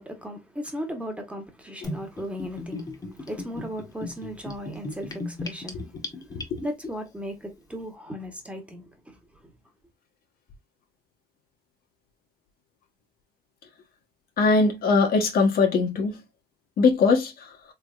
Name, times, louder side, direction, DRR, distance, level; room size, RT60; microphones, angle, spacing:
voice 1, 0.0-6.0 6.3-9.5, equal, 5° right, 1.0 m, -37 dB
Gurgling / Bathtub (filling or washing), 1.8-6.9, left 2 dB, 20° left, 1.0 m, -36 dB
voice 2, 14.4-16.1 16.8-17.3, left 4 dB, 60° left, 1.1 m, -20 dB
3.5 x 3.3 x 2.4 m
cardioid pair, 110°, 17 cm